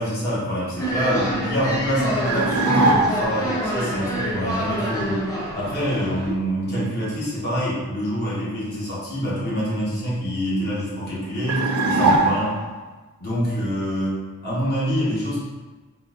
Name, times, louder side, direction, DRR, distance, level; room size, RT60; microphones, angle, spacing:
voice 1, 0.0-5.2 5.5-12.6 13.2-15.4, equal, 50° left, -8 dB, 1.1 m, -26 dB
sound 1, 0.8-6.3, equal, 15° left, 0.6 m, -27 dB
sound 2, 2.3-3.4 11.5-12.8, right 2 dB, 80° right, 0.4 m, -20 dB
3.8 x 2.5 x 2.4 m, 1.3 s
head